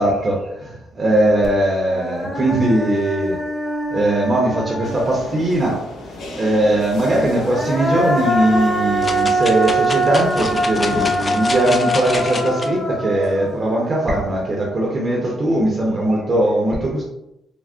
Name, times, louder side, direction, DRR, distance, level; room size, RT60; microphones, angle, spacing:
voice 1, 0.0-3.4 3.9-5.8 6.3-17.0, right 1 dB, 35° right, -2 dB, 0.6 m, -19 dB
Human voice, 1.4-1.5 1.9-5.6 7.2-14.5, right 1 dB, 5° left, 0.8 m, -23 dB
sound 1, 4.8-11.3, left 2 dB, 80° left, 0.7 m, -36 dB
sound 2, 9.0-12.7 13.2-13.3, left 3 dB, 30° left, 0.3 m, -28 dB
3.5 x 2.0 x 2.4 m, 0.84 s
cardioid pair, 90°, 0 cm